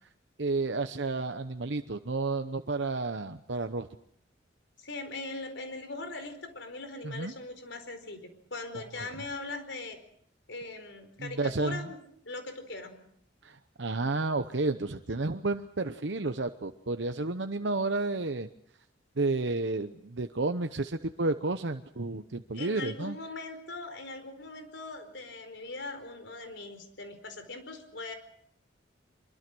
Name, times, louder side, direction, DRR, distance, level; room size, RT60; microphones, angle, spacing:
voice 1, 0.4-3.9 7.0-7.3 9.0-9.1 11.2-11.9 13.4-18.5 19.2-23.2, right 3 dB, 75° right, 8 dB, 0.9 m, -31 dB
voice 2, 4.8-10.0 10.5-12.0 12.2-13.0 22.5-28.1, left 3 dB, 75° left, 8 dB, 4.6 m, -40 dB
24.5 x 23.5 x 6.2 m, 0.68 s
head